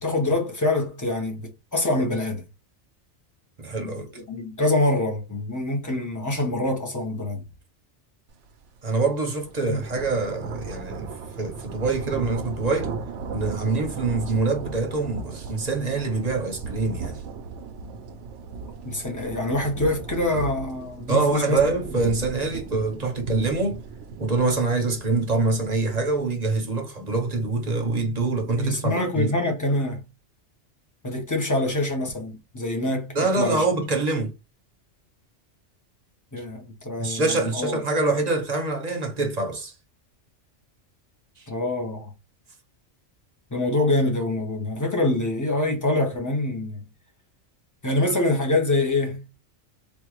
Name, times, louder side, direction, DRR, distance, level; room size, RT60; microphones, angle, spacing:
voice 1, 0.0-2.4 3.8-7.4 9.7-9.8 18.8-21.6 28.6-30.0 31.0-33.6 36.3-37.8 41.5-42.1 43.5-46.8 47.8-49.2, left 2 dB, 20° left, 0.8 m, -25 dB
voice 2, 3.6-4.1 8.8-11.1 11.4-12.9 13.3-17.2 21.1-23.8 24.2-29.3 33.1-34.3 37.0-39.7 41.4-41.5, right 3 dB, 40° right, 0.9 m, -25 dB
sound 1, 8.5-8.6 9.0-26.3, right 4 dB, 80° right, 0.9 m, -36 dB
3.7 x 2.4 x 3.0 m
omnidirectional pair, 1.2 m